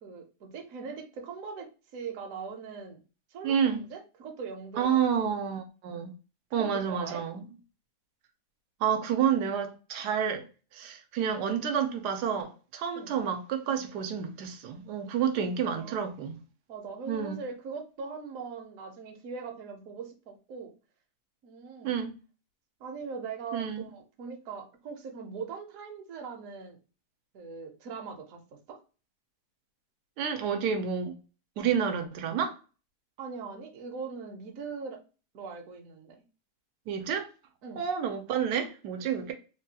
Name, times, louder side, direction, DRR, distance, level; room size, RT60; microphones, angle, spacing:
voice 1, 0.0-3.0 3.3-5.2 6.5-7.2 12.9-13.1 15.6-16.2 16.7-20.7 21.4-22.0 22.8-26.8 27.3-28.8 33.2-35.0 35.3-36.2 37.6-37.8, right 5 dB, 65° right, 1.0 m, -41 dB
voice 2, 3.4-3.8 4.8-6.1 6.5-7.4 8.8-10.4 10.7-16.3 17.1-17.4 21.8-22.1 23.5-23.9 30.2-31.2 31.6-32.5 36.9-37.3 37.8-39.3, right 7 dB, 90° right, 1.2 m, -29 dB
3.4 x 2.2 x 2.7 m
omnidirectional pair, 1.7 m